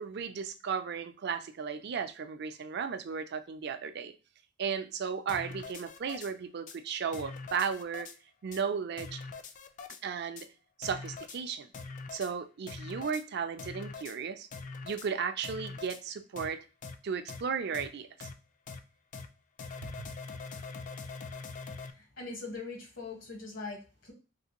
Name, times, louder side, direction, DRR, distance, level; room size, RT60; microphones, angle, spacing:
voice 1, 0.0-4.1 4.6-8.1 8.4-9.2 10.0-10.5 10.8-11.7 12.1-14.5 14.8-16.6 17.0-18.3 20.0-20.1, right 6 dB, 60° right, 9 dB, 0.4 m, -35 dB
sound 1, 5.3-6.3 6.7-6.8 7.1-8.2 8.5-8.6 9.0-10.0 10.4-10.5 10.8-11.4 11.7-12.3 12.7-13.2 13.6-14.2 14.5-15.1 15.4-16.0 16.4-16.5 16.8-17.0 17.3-17.4 17.7-17.9 18.2-18.3 18.7-18.8 19.1-19.3 19.6-21.9, left 4 dB, 40° left, 0.3 m, -43 dB
voice 2, 21.9-24.1, left 3 dB, 80° left, 1 dB, 1.3 m, -42 dB
3.3 x 2.5 x 2.8 m, 0.33 s
head